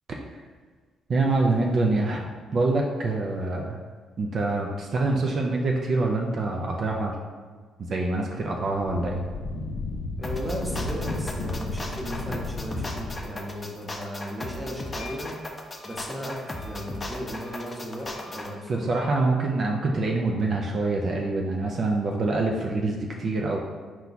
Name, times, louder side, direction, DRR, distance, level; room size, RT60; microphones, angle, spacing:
voice 1, 1.1-3.8 4.2-7.2 7.8-9.2 18.7-23.6, right 2 dB, 50° right, 0 dB, 0.4 m, -25 dB
Wind, 8.7-13.4, left 2 dB, 75° left, 0.5 m, -33 dB
sound 1, 10.2-18.5, left 1 dB, 25° left, 0.5 m, -36 dB
voice 2, 10.2-15.4 15.8-19.0, equal, 5° right, -2 dB, 0.8 m, -36 dB
Wind instrument woodwind instrument, 14.9-19.2, left 3 dB, 55° left, 0.9 m, -49 dB
4.4 x 2.3 x 3.9 m, 1.5 s
cardioid pair, 90°, 0 cm